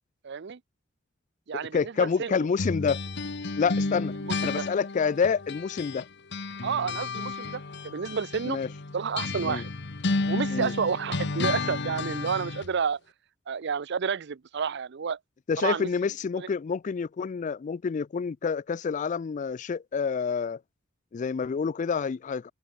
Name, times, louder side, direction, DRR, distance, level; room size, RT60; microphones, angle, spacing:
voice 1, 0.2-0.6 1.5-2.4 4.3-4.6 6.6-8.6 8.9-9.7 10.3-13.0 13.5-15.2 15.6-15.9 16.4-16.5, right 6 dB, 55° right, 0.5 m, -30 dB
voice 2, 1.5-3.0 3.6-4.1 4.4-6.1 8.5-8.7 9.4-9.6 10.5-10.7 15.5-20.6 21.1-22.5, left 5 dB, 40° left, 0.3 m, -28 dB
sound 1, 2.6-6.0 6.3-12.7, left 3 dB, 55° left, 1.2 m, -32 dB
head